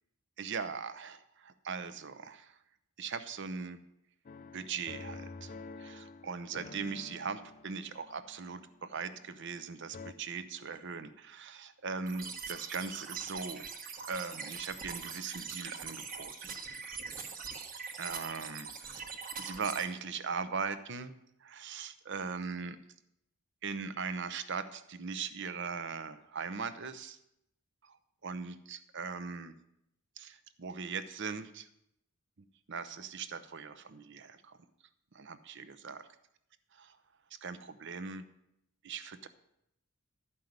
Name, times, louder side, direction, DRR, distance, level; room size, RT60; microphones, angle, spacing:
voice 1, 0.4-2.6 3.0-3.8 4.5-5.5 5.8-13.6 14.1-16.5 17.9-18.7 19.4-21.1 21.4-22.8 23.6-27.2 27.8-29.5 30.2-31.7 32.7-34.6 35.1-36.0 36.8-37.0 37.3-38.2 38.8-39.3, right 5 dB, 55° right, 12 dB, 0.7 m, -40 dB
sound 1, 4.3-9.6 9.9-10.1, left 3 dB, 40° left, 0.4 m, -49 dB
sound 2, 12.1-19.8, right 5 dB, 40° right, 1.2 m, -43 dB
11.5 x 5.6 x 8.0 m, 0.81 s
head